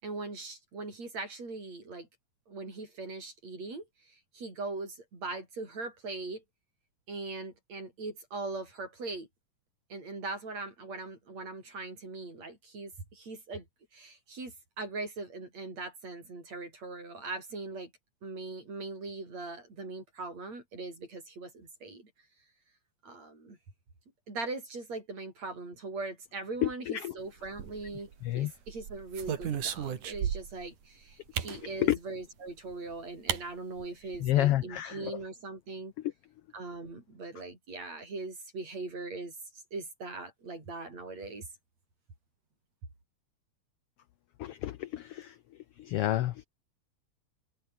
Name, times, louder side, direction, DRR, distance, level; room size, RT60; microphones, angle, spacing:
voice 1, 0.0-2.1 2.5-6.4 7.1-9.3 9.9-13.7 13.9-17.9 18.2-22.1 23.0-23.6 24.3-28.1 28.4-35.9 36.5-39.4 39.7-41.5, right 3 dB, 60° right, 9.2 m, -40 dB
voice 2, 26.6-27.1 28.2-28.5 31.8-32.0 34.2-35.2 36.0-36.1 44.4-45.4 45.8-46.4, left 14 dB, 75° left, 1.4 m, -30 dB
sound 1, 27.4-28.1 28.7-30.7 31.3-31.6 32.7-32.8 33.3-33.4 33.8-33.9 34.1-34.5, right 9 dB, 85° right, 3.7 m, -35 dB
omnidirectional pair, 3.5 m